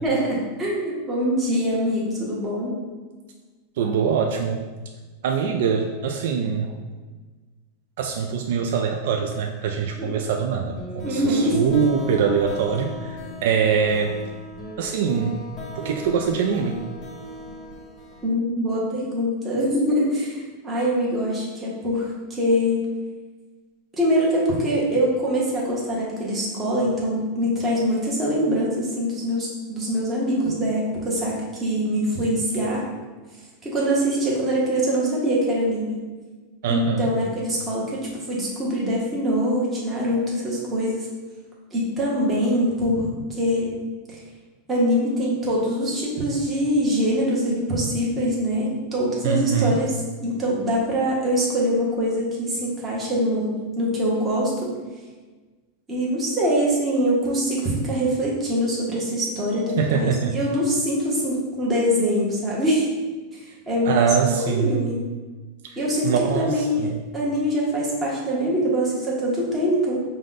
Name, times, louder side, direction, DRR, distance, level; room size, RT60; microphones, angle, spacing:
voice 1, 0.0-2.8 10.0-10.1 11.0-11.6 18.2-22.8 24.0-31.3 31.6-32.8 33.6-36.0 36.7-41.1 41.7-43.7 44.7-54.7 55.9-62.9 63.7-65.0 65.8-66.1 66.3-70.0, equal, 15° right, -5 dB, 0.9 m, -23 dB
voice 2, 3.8-4.6 5.2-6.8 8.0-14.1 14.8-15.4 15.8-16.8 36.6-37.1 49.2-49.8 59.8-60.4 63.8-65.0 65.6-65.8 66.0-67.0, right 6 dB, 65° right, 2 dB, 0.3 m, -23 dB
sound 1, 10.8-18.3, equal, 25° left, 0.8 m, -37 dB
4.9 x 2.2 x 3.9 m, 1.3 s
supercardioid pair, 165°, 0 cm